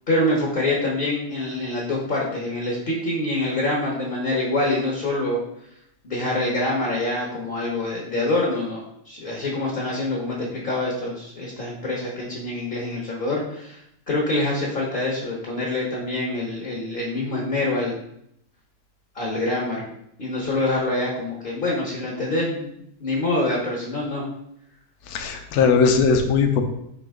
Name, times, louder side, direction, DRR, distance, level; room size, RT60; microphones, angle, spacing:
voice 1, 0.1-5.4 6.0-13.8 14.1-18.0 19.1-19.9 20.2-22.7 23.0-24.2, left 2 dB, 40° left, -3 dB, 0.8 m, -25 dB
voice 2, 25.1-26.6, left 5 dB, 70° left, 5 dB, 1.1 m, -19 dB
5.2 x 2.9 x 3.5 m, 0.75 s
omnidirectional pair, 1.7 m